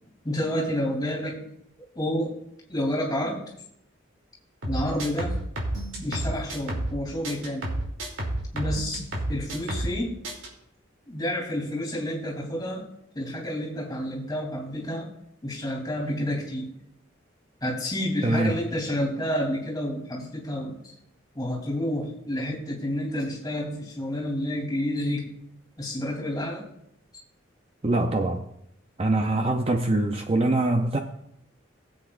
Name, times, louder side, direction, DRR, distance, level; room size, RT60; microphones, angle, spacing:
voice 1, 0.2-1.5 1.9-2.4 2.7-3.4 4.7-5.4 6.0-7.7 8.5-10.2 11.1-12.9 13.1-15.1 15.4-16.7 17.6-20.9 21.3-25.3 25.8-26.6, left 1 dB, 20° left, 3.0 m, -29 dB
sound 1, 4.6-7.0 7.2-10.0 10.2-10.5, right 1 dB, 80° right, 2.9 m, -30 dB
voice 2, 18.2-18.5 27.8-28.4 29.0-31.0, right 2 dB, 30° right, 0.6 m, -23 dB
19.5 x 7.9 x 2.5 m
head